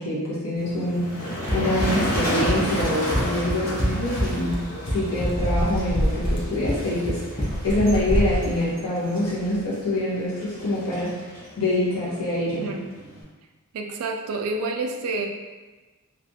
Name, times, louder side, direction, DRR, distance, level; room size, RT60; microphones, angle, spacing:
voice 1, 0.0-11.3 11.6-12.7, left 1 dB, 75° left, -8 dB, 0.8 m, -25 dB
Motor vehicle (road), 0.6-13.2, equal, 40° left, 1.0 m, -32 dB
Run, 1.5-8.5, equal, 25° left, 0.4 m, -28 dB
sound 1, 4.4-4.5 5.2-6.4 7.2-8.5 9.2-9.6, equal, 90° left, 1.3 m, -26 dB
voice 2, 12.6-12.9 13.7-15.3, right 3 dB, 75° right, 4 dB, 0.3 m, -29 dB
2.5 x 2.3 x 2.6 m, 1.2 s
head